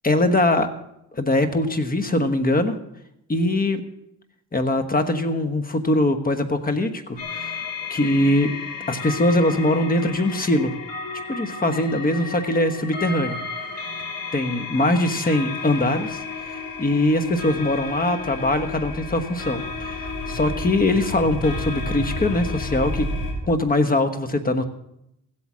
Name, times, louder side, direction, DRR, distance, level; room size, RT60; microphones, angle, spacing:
voice 1, 0.0-0.7 1.1-2.8 3.3-3.8 4.5-7.6 7.9-8.5 8.9-10.7 11.3-13.4 14.3-16.2 16.5-23.1 23.5-24.6, left 1 dB, 25° left, 9 dB, 1.3 m, -22 dB
sound 1, 7.2-23.3, left 3 dB, 75° left, 3.4 m, -32 dB
15.5 x 8.4 x 6.2 m, 0.81 s
cardioid pair, 100°, 34 cm